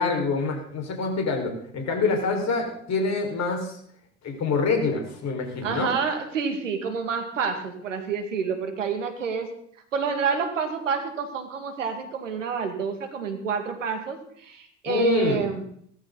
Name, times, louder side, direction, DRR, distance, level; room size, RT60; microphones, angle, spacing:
voice 1, 0.0-3.8 4.2-5.9 14.9-15.4, left 4 dB, 45° left, 3 dB, 5.4 m, -26 dB
voice 2, 5.6-9.5 9.9-15.6, right 5 dB, 85° right, 7 dB, 2.4 m, -28 dB
18.5 x 14.0 x 4.1 m, 0.64 s
hypercardioid pair, 70°, 37 cm